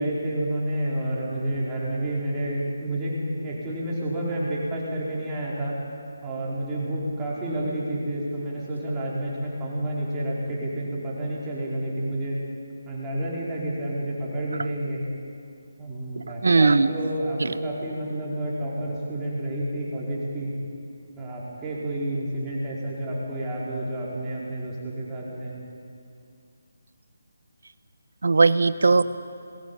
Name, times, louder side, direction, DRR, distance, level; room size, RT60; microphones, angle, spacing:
voice 1, 0.0-5.7 6.2-12.4 12.9-15.0 15.8-20.5 21.2-25.5 28.8-28.9, right 1 dB, 15° right, -6 dB, 4.8 m, -29 dB
voice 2, 16.4-16.9 17.4-17.5 28.2-29.0, right 3 dB, 70° right, 14 dB, 0.9 m, -18 dB
21.0 x 15.5 x 8.8 m, 2.4 s
figure-of-eight pair, 160°, 0 cm